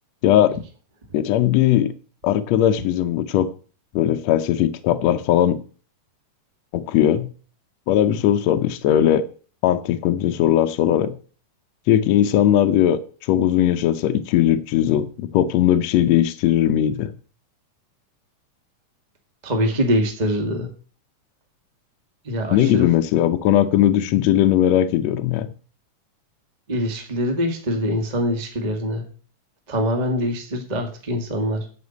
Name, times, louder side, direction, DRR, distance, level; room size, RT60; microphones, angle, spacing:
voice 1, 1.1-1.9 2.2-3.5 3.9-5.6 6.7-7.3 7.9-9.3 9.6-11.1 11.9-13.0 13.3-17.1 22.5-25.5, left 11 dB, 75° left, 1.6 m, -18 dB
voice 2, 19.4-20.7 22.2-22.9 26.7-29.0 29.7-31.7, equal, 25° right, 1.0 m, -24 dB
9.5 x 6.1 x 8.2 m
omnidirectional pair, 3.7 m